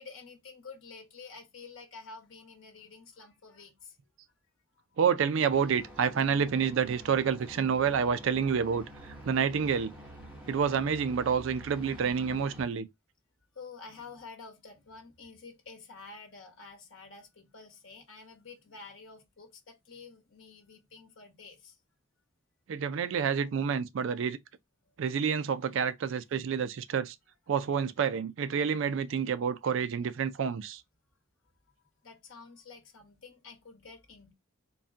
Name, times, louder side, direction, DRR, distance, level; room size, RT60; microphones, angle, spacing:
voice 1, 0.0-4.0 9.0-9.3 10.5-10.8 13.5-21.8 24.8-24.9 32.0-34.3, left 4 dB, 65° left, 1.1 m, -49 dB
voice 2, 5.0-9.9 10.5-12.9 22.7-24.4 25.0-27.1 27.5-30.8, right 7 dB, 65° right, 0.4 m, -28 dB
sound 1, 5.5-12.6, equal, 5° right, 0.9 m, -48 dB
4.0 x 2.1 x 3.4 m
head